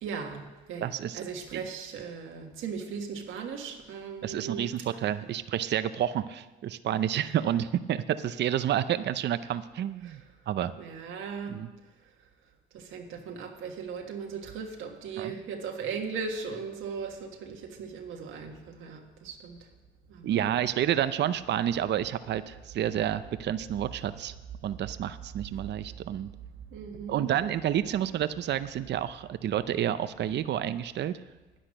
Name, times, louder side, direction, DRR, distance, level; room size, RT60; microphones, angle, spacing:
voice 1, 0.0-0.9 1.1-4.7 10.0-10.2 10.8-11.6 12.7-19.6 20.1-20.5 26.7-27.2, right 5 dB, 85° right, 2 dB, 1.5 m, -38 dB
voice 2, 0.8-1.2 1.5-1.6 4.2-10.2 10.5-10.7 11.5-11.7 15.2-15.3 20.2-24.3 24.6-26.3 27.1-31.1, right 10 dB, 60° right, 13 dB, 0.6 m, -29 dB
10.0 x 10.0 x 6.5 m, 1.2 s
cardioid pair, 90°, 20 cm